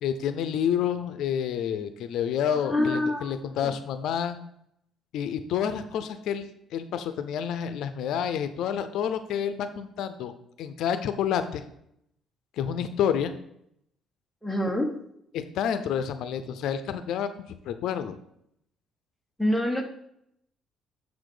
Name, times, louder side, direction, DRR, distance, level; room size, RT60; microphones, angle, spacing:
voice 1, 0.0-4.4 5.1-6.5 6.7-10.3 10.6-11.6 12.6-13.3 15.3-18.2, left 8 dB, 70° left, 9 dB, 0.5 m, -29 dB
voice 2, 2.5-3.3 3.6-3.7 14.4-15.0 19.4-19.8, left 1 dB, ahead, 0 dB, 1.0 m, -26 dB
7.1 x 4.0 x 4.9 m, 0.75 s
cardioid pair, 135°, 0 cm